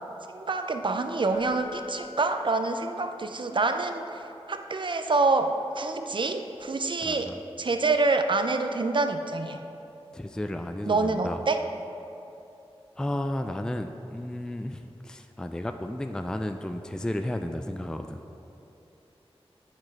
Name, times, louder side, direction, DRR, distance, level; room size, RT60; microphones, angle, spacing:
voice 1, 0.3-4.2 4.5-9.6 10.9-11.6, right 3 dB, 50° right, 7 dB, 0.5 m, -27 dB
Keyboard (musical), 1.3-3.3 6.5-6.7, left 5 dB, 85° left, 1.3 m, -46 dB
voice 2, 7.0-7.4 10.1-11.4 13.0-18.2, left 1 dB, 5° left, 7 dB, 0.3 m, -33 dB
8.8 x 4.3 x 4.6 m, 2.8 s
wide cardioid pair, 50°, 11 cm